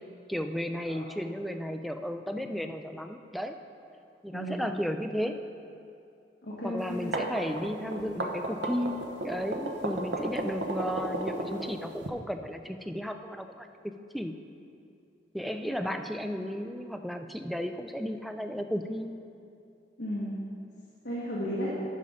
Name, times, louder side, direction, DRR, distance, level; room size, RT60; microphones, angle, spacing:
voice 1, 0.3-3.5 4.2-5.4 6.6-14.4 15.3-19.1, equal, ahead, 6 dB, 0.3 m, -34 dB
voice 2, 4.3-4.6 6.4-7.1 20.0-20.3 21.0-21.7, equal, 60° left, -7 dB, 1.4 m, -34 dB
sound 1, 6.9-12.1, right 1 dB, 70° right, 0.9 m, -33 dB
11.0 x 5.5 x 4.9 m, 2.6 s
head